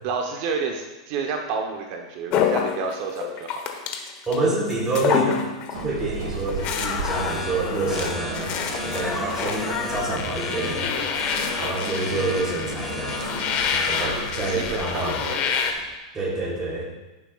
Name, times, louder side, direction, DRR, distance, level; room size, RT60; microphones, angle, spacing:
voice 1, 0.0-3.6 9.2-9.6 11.6-12.0 14.0-15.7, right 4 dB, 50° right, 3 dB, 1.0 m, -31 dB
sound 1, 2.3-4.4 4.7-5.9 6.2-15.7, left 7 dB, 40° left, 1.1 m, -28 dB
voice 2, 4.3-5.4 5.7-8.5 8.8-10.9 11.6-15.2 16.1-16.8, right 2 dB, 15° right, -4 dB, 3.5 m, -27 dB
sound 2, 5.7-15.0, right 3 dB, 85° right, 1.7 m, -35 dB
sound 3, 6.4-16.0, left 2 dB, ahead, 1.3 m, -36 dB
15.0 x 7.3 x 2.4 m, 1.1 s
hypercardioid pair, 130°, 3 cm